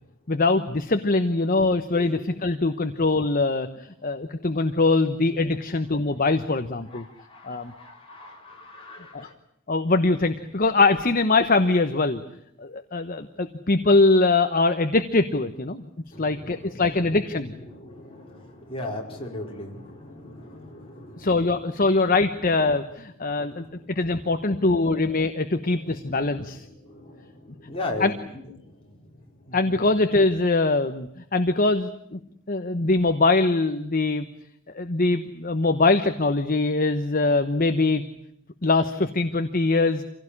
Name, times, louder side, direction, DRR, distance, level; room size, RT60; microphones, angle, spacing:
voice 1, 0.3-7.0 7.4-7.7 9.1-9.3 9.7-12.2 12.6-15.9 16.2-17.5 21.2-26.6 28.0-28.1 29.5-32.2 32.5-34.3 34.7-38.0 38.6-40.0, left 3 dB, 40° left, 8 dB, 1.1 m, -22 dB
voice 2, 6.9-9.3 16.1-21.6 23.4-24.8 25.7-29.8, left 2 dB, 25° left, -1 dB, 4.8 m, -39 dB
26.5 x 17.0 x 9.9 m, 0.75 s
head